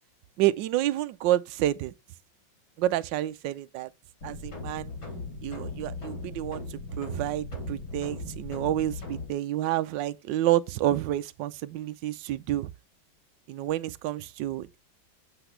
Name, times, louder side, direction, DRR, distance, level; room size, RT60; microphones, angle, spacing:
voice 1, 0.4-1.9 2.8-3.9 4.2-4.9 5.4-6.6 6.9-12.7 13.5-14.8, right 14 dB, 70° right, 1.3 m, -29 dB
sound 1, 4.2-9.3, left 3 dB, 55° left, 4.4 m, -38 dB
8.0 x 8.0 x 3.1 m
omnidirectional pair, 2.1 m